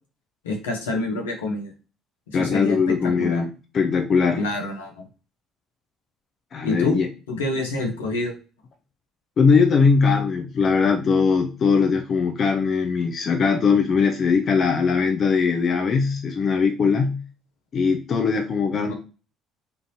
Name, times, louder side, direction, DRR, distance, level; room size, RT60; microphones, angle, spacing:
voice 1, 0.4-1.7 2.3-3.4 4.4-4.9 6.6-7.0 7.3-8.3 18.7-18.9, left 2 dB, 90° left, 2 dB, 0.8 m, -27 dB
voice 2, 2.3-4.4 6.5-7.1 9.4-17.2 17.7-18.9, left 5 dB, 50° left, 5 dB, 0.5 m, -20 dB
3.6 x 2.5 x 2.7 m, 0.33 s
hypercardioid pair, 60°, 0 cm